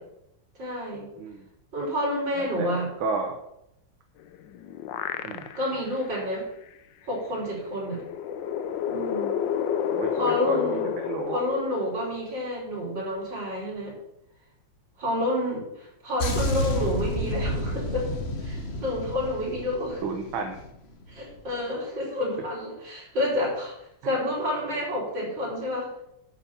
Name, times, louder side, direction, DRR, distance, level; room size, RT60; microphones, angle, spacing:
voice 1, 0.6-1.1 1.7-2.9 5.6-6.5 7.1-8.0 8.9-9.5 10.1-10.9 11.3-14.0 15.0-18.1 18.4-20.0 21.1-23.7 24.0-25.9, left 1 dB, 65° right, -4 dB, 5.1 m, -29 dB
voice 2, 2.4-3.4 5.2-5.5 9.9-10.8 11.1-11.4 20.0-20.6 24.0-24.1, right 4 dB, 80° right, 4 dB, 1.9 m, -32 dB
sound 1, 4.2-5.9 6.3-6.4 7.7-12.5, left 9 dB, 75° left, 1.3 m, -30 dB
sound 2, 16.2-20.8 21.0-21.3, equal, 35° left, 1.2 m, -30 dB
9.6 x 6.4 x 7.0 m, 0.82 s
omnidirectional pair, 2.2 m